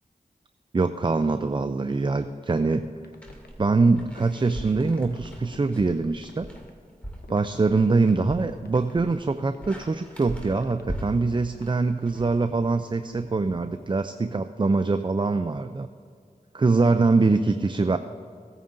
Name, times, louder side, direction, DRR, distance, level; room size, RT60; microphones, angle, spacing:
voice 1, 0.7-2.9 3.6-6.5 7.3-15.9 16.5-18.0, right 3 dB, 30° right, 10 dB, 0.4 m, -23 dB
sound 1, 2.2-3.5 4.0-4.7 5.1-5.7 6.2-6.7 7.2-7.9 8.3-8.9 9.4-10.0 10.5-11.1 11.5-14.0, left 3 dB, 85° left, 0.8 m, -49 dB
sound 2, 3.2-13.0, equal, 10° left, 2.5 m, -41 dB
17.5 x 9.0 x 2.6 m, 2.2 s
cardioid pair, 40°, 16 cm